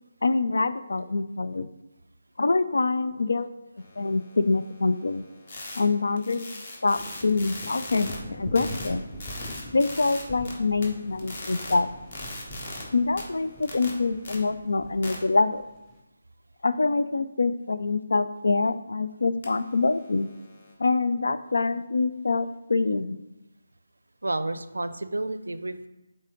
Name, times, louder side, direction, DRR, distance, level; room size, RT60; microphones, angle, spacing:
voice 1, 0.2-1.7 2.4-3.5 4.0-5.2 5.8-6.5 6.8-9.0 9.7-11.9 12.9-15.6 16.6-20.3 20.8-23.2, left 3 dB, 60° left, 12 dB, 0.4 m, -25 dB
sound 1, 3.8-8.2 8.6-10.5 10.8-12.8 13.2-14.3 15.0-15.2 19.4-20.7, left 2 dB, 40° left, 1.4 m, -41 dB
sound 2, 6.9-16.0, equal, 10° left, 0.8 m, -43 dB
voice 2, 24.2-25.9, right 2 dB, 70° right, 12 dB, 0.5 m, -30 dB
8.1 x 3.8 x 3.8 m, 0.99 s
figure-of-eight pair, 150°, 0 cm